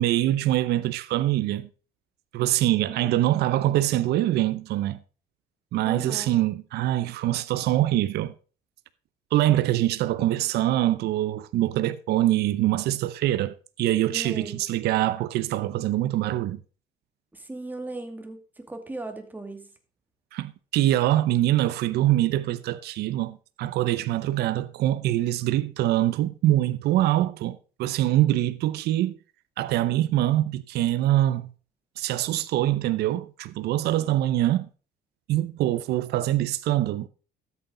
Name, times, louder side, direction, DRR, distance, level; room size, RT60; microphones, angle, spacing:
voice 1, 0.0-1.7 2.3-5.0 5.7-8.3 9.3-16.6 20.3-29.2 29.6-31.5 32.0-34.7 35.3-37.1, right 14 dB, 75° right, 0.7 m, -24 dB
voice 2, 2.9-3.2 5.9-6.4 14.1-14.6 17.3-19.7 34.0-34.2, right 2 dB, 10° right, 2.2 m, -38 dB
13.0 x 8.4 x 3.9 m
cardioid pair, 110°, 17 cm